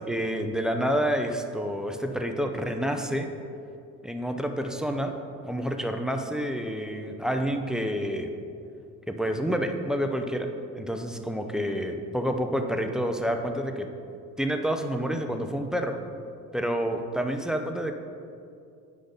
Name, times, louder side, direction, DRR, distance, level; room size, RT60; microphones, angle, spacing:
voice 1, 0.0-3.3 4.0-5.2 5.4-8.3 9.1-10.5 10.8-13.9 14.4-16.0 16.5-17.9, equal, ahead, 5 dB, 0.5 m, -28 dB
9.9 x 5.1 x 3.9 m, 2.5 s
cardioid pair, 100°, 35 cm